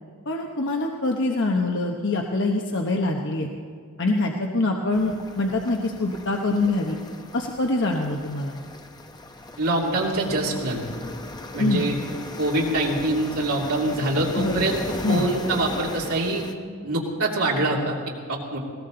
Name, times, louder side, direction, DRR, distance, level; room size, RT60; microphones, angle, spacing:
voice 1, 0.3-3.5 4.0-7.0 7.3-8.5 11.6-11.9 14.4-14.6 15.0-15.2, left 2 dB, 55° left, 1 dB, 1.1 m, -24 dB
sound 1, 4.9-16.5, left 2 dB, 20° left, 0.8 m, -38 dB
voice 2, 9.6-10.8 11.5-11.9 12.4-16.4 16.8-18.0 18.3-18.6, right 2 dB, 85° right, -3 dB, 2.7 m, -24 dB
20.0 x 17.5 x 3.9 m, 2.1 s
head